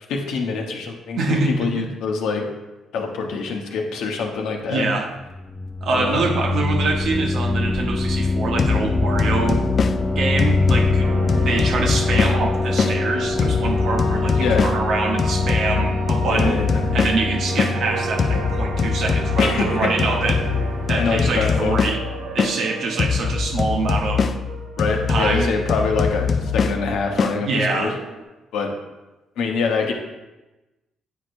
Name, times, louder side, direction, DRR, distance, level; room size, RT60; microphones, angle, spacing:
voice 1, 0.1-2.5 2.9-4.8 5.9-6.2 14.4-14.6 16.3-16.7 19.4-19.9 21.0-21.8 24.8-27.9 28.5-28.7 29.4-29.9, left 4 dB, 85° left, 2 dB, 0.9 m, -24 dB
voice 2, 1.2-1.8 4.7-5.1 5.8-9.6 10.1-11.1 11.4-16.6 16.9-20.4 20.9-22.0 22.3-24.2 25.1-25.5 27.4-27.9, right 3 dB, 65° right, 2 dB, 1.0 m, -24 dB
sound 1, 5.1-21.8, left 3 dB, 25° left, 0.9 m, -24 dB
sound 2, 8.6-13.0 13.4-17.8 18.2-22.6 23.0-27.4, left 5 dB, 45° left, 0.3 m, -23 dB
sound 3, 11.0-28.2, right 5 dB, 90° right, 0.6 m, -33 dB
9.1 x 4.6 x 2.6 m, 1.1 s
cardioid pair, 90°, 0 cm